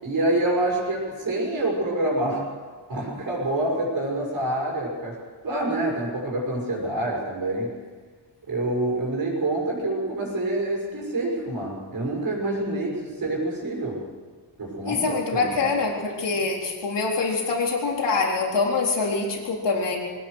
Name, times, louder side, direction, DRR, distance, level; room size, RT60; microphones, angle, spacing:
voice 1, 0.0-2.5 2.9-5.2 5.4-7.8 8.5-14.0 14.6-15.7, right 1 dB, 50° right, -4 dB, 5.9 m, -27 dB
voice 2, 14.9-20.0, left 4 dB, 75° left, -1 dB, 4.2 m, -25 dB
23.0 x 18.5 x 6.6 m, 1.5 s
wide cardioid pair, 170°, 43 cm